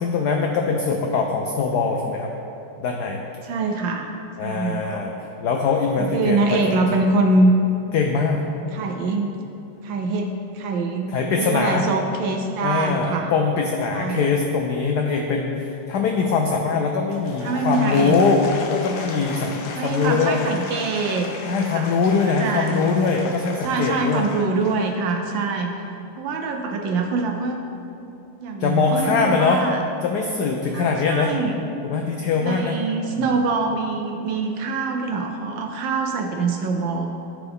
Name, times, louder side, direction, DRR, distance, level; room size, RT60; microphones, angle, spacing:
voice 1, 0.0-2.3 2.8-3.2 4.4-7.0 7.9-8.4 11.1-11.9 12.6-18.4 18.7-20.5 21.5-24.3 28.6-29.6 30.0-31.3 31.8-32.8 33.2-33.3, left 4 dB, 90° left, 2 dB, 0.8 m, -22 dB
voice 2, 3.4-4.1 4.4-5.0 6.0-7.5 8.7-9.3 9.8-11.1 11.4-13.3 13.9-14.3 17.4-18.2 19.8-21.3 21.7-21.9 22.2-22.8 23.6-25.7 26.2-27.6 28.4-29.8 30.7-31.6 32.4-37.1, right 3 dB, 70° right, 3 dB, 1.2 m, -24 dB
Applause / Crowd, 17.0-25.2, left 4 dB, 70° left, 1.2 m, -36 dB
13.5 x 4.6 x 3.5 m, 2.8 s
omnidirectional pair, 2.4 m